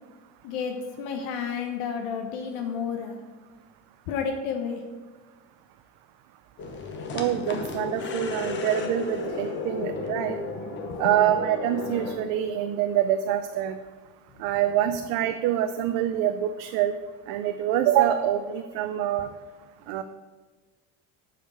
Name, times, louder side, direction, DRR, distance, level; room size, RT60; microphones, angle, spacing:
voice 1, 0.4-3.2 4.1-4.8 9.8-9.9 10.8-11.1 19.2-19.3, left 6 dB, 85° left, 4 dB, 1.1 m, -31 dB
sound 1, 6.6-12.1, left 3 dB, 35° left, 1.0 m, -33 dB
voice 2, 7.1-10.4 11.0-13.8 14.4-16.9 17.3-19.3 19.9-20.0, right 11 dB, 70° right, 8 dB, 0.6 m, -25 dB
8.7 x 5.0 x 6.9 m, 1.3 s
cardioid pair, 180°, 35 cm